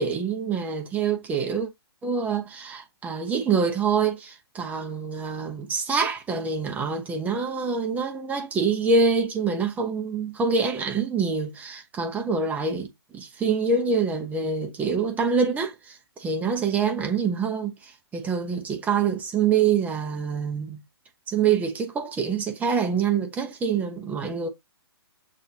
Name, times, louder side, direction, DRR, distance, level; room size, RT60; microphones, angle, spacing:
voice 1, 0.0-1.7 2.0-20.8 21.3-24.5, right 5 dB, 10° right, 0.9 m, -26 dB
6.4 x 2.7 x 2.9 m
hypercardioid pair, 140°, 14 cm